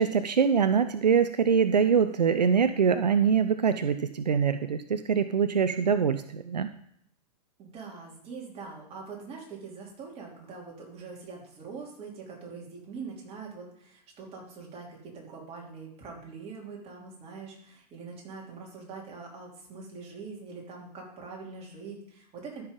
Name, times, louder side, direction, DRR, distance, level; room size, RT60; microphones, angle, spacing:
voice 1, 0.0-6.7, right 6 dB, 85° right, 10 dB, 0.5 m, -24 dB
voice 2, 7.6-22.6, right 4 dB, 30° right, -2 dB, 3.0 m, -43 dB
13.0 x 5.7 x 3.7 m, 0.68 s
figure-of-eight pair, 105°, 21 cm